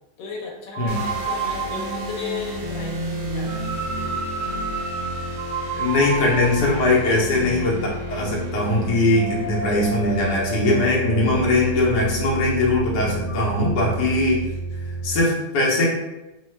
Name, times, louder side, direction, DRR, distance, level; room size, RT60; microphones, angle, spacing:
voice 1, 0.2-4.1, left 4 dB, 90° left, -2 dB, 1.4 m, -35 dB
sound 1, 0.7-13.5, right 2 dB, 50° right, 0.4 m, -31 dB
voice 2, 0.8-1.1 5.7-14.4 15.0-15.9, left 2 dB, 70° left, -3 dB, 1.3 m, -21 dB
sound 2, 0.9-15.2, right 1 dB, 70° right, 1.1 m, -32 dB
3.1 x 2.3 x 3.1 m, 1.0 s
omnidirectional pair, 1.9 m